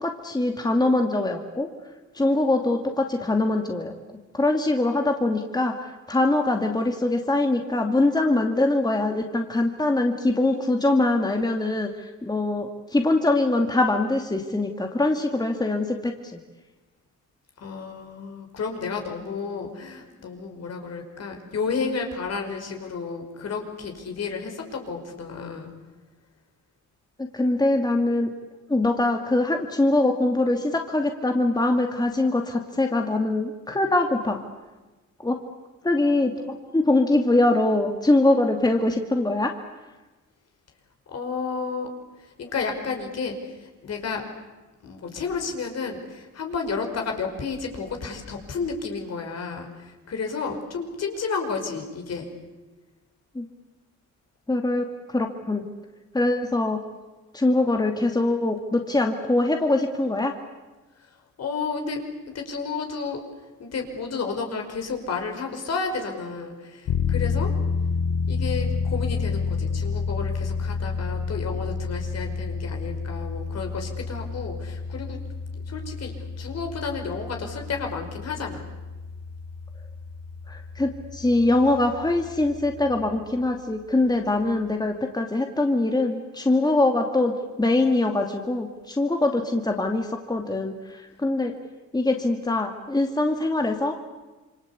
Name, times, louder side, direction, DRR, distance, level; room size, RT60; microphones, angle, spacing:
voice 1, 0.0-1.7 2.1-3.9 4.3-5.7 6.1-11.9 12.2-16.1 27.2-28.3 28.7-34.4 35.2-35.4 35.8-39.5 53.3-53.5 54.5-55.7 56.1-56.8 57.3-60.3 80.5-91.5 91.9-93.9, left 2 dB, 15° left, 4 dB, 2.5 m, -23 dB
voice 2, 17.6-25.7 41.1-41.9 42.2-44.2 44.8-52.3 61.0-61.1 61.4-62.0 62.3-63.2 63.6-67.5 68.3-75.2 75.5-78.6, left 5 dB, 55° left, 4 dB, 5.4 m, -31 dB
sound 1, 66.9-83.2, left 5 dB, 70° left, 2.0 m, -30 dB
27.5 x 24.5 x 8.4 m, 1.2 s
cardioid pair, 90°, 30 cm